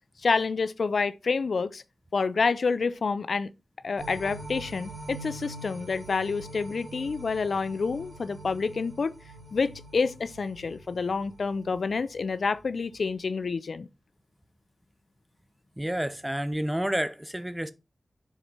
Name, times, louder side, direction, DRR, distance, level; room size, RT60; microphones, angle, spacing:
voice 1, 0.2-1.8 2.1-3.5 3.8-9.1 9.5-13.9, left 4 dB, 90° left, 0.5 m, -28 dB
sound 1, 4.0-12.4 12.8-12.9, right 2 dB, 65° right, 4.7 m, -44 dB
voice 2, 15.8-17.7, right 1 dB, 10° right, 0.8 m, -29 dB
7.3 x 4.3 x 5.2 m
wide cardioid pair, 65°, 0 cm